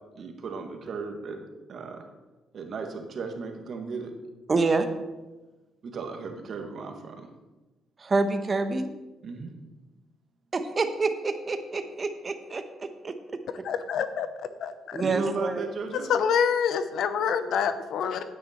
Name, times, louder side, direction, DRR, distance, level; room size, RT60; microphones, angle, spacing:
voice 1, 0.1-2.0 2.5-4.1 5.8-7.3 9.2-9.5 15.0-16.1, right 4 dB, 55° right, 4 dB, 1.6 m, -35 dB
voice 2, 4.5-4.9 8.0-8.9 10.5-13.1 14.9-15.7, right 3 dB, 35° right, 9 dB, 1.0 m, -27 dB
voice 3, 13.6-14.3 14.6-15.0 16.1-18.2, left 7 dB, 75° left, 11 dB, 0.8 m, -26 dB
9.4 x 9.3 x 4.3 m, 1.1 s
cardioid pair, 90°, 0 cm